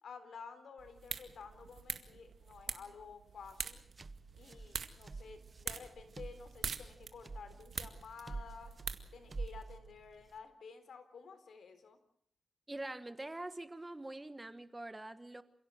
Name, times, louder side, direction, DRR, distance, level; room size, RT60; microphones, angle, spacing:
voice 1, 0.0-3.8 4.4-8.7 9.1-12.0, left 5 dB, 85° left, 10 dB, 3.9 m, -52 dB
sound 1, 0.8-9.6, right 6 dB, 75° right, 2.0 m, -45 dB
sound 2, 3.4-10.4, right 3 dB, 35° right, 1.1 m, -48 dB
voice 2, 12.7-15.4, right 2 dB, 15° right, 12 dB, 1.5 m, -44 dB
28.0 x 17.0 x 7.8 m, 0.66 s
wide cardioid pair, 105°, 0 cm